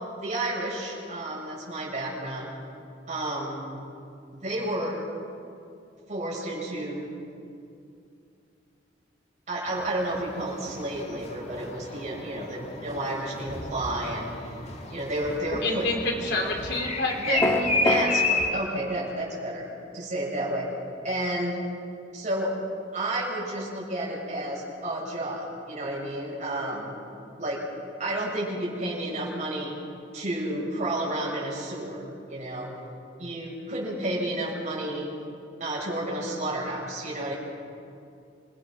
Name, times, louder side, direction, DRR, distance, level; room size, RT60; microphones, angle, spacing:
voice 1, 0.2-2.5 3.1-3.6 4.3-5.0 6.1-7.1 9.5-14.6 14.9-15.9 17.3-19.7 19.9-20.7 21.0-21.6 22.1-22.6 22.9-27.0 27.4-27.7 28.0-29.8 30.1-32.7 33.2-35.2 35.6-37.4, right 1 dB, 40° right, -4 dB, 6.9 m, -31 dB
sound 1, 9.7-18.5, left 3 dB, 35° left, 1.6 m, -32 dB
voice 2, 15.6-17.5, left 2 dB, 65° left, 1 dB, 3.8 m, -28 dB
sound 2, 17.4-18.1, left 1 dB, 15° left, 1.4 m, -22 dB
27.0 x 18.5 x 6.2 m, 2.5 s
head